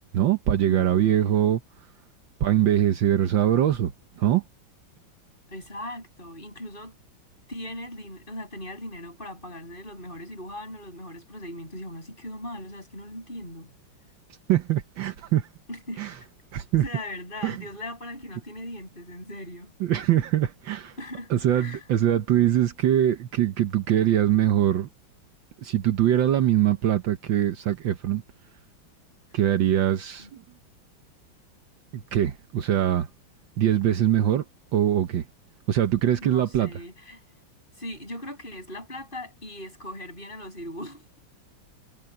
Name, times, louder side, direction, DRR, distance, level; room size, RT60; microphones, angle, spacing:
voice 1, 0.1-1.6 2.4-4.4 14.5-15.5 16.0-16.1 16.5-16.8 17.4-17.6 19.8-20.9 21.3-24.9 25.6-28.2 29.3-30.3 31.9-33.1 33.6-34.4 34.7-35.2 35.7-36.7, right 11 dB, 70° right, 1.6 m, -22 dB
voice 2, 0.7-1.5 5.5-6.9 7.5-13.7 15.7-16.3 16.8-19.7 21.0-21.9 29.3-29.4 30.2-30.3 36.2-37.2 37.8-41.2, left 1 dB, 25° left, 8.3 m, -39 dB
omnidirectional pair, 2.2 m